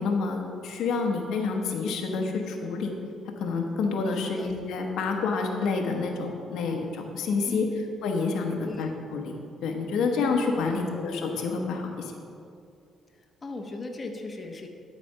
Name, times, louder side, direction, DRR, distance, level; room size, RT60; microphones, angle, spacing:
voice 1, 0.0-2.9 3.4-7.7 8.0-9.3 9.6-12.1, left 4 dB, 80° left, 2 dB, 1.0 m, -28 dB
voice 2, 7.5-7.8 8.6-9.0 10.7-10.9 13.4-14.7, left 3 dB, 30° left, 2 dB, 0.9 m, -37 dB
12.5 x 4.1 x 5.5 m, 2.5 s
cardioid pair, 90°, 0 cm